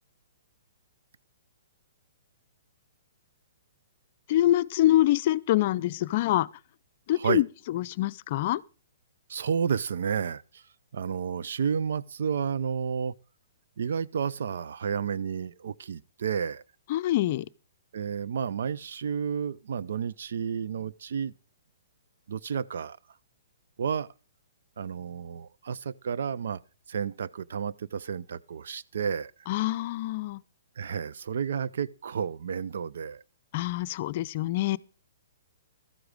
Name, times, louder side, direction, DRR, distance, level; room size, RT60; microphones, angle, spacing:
voice 1, 4.3-6.5 7.1-8.6 16.9-17.5 29.5-30.4 33.5-34.8, left 14 dB, 45° left, 0.4 m, -25 dB
voice 2, 9.3-10.6 10.9-13.1 13.8-16.6 17.9-21.3 22.3-23.0 23.8-24.1 24.8-26.6 26.9-29.3 30.8-33.2, right 7 dB, 70° right, 0.5 m, -31 dB
13.5 x 7.8 x 5.1 m
hypercardioid pair, 130°, 0 cm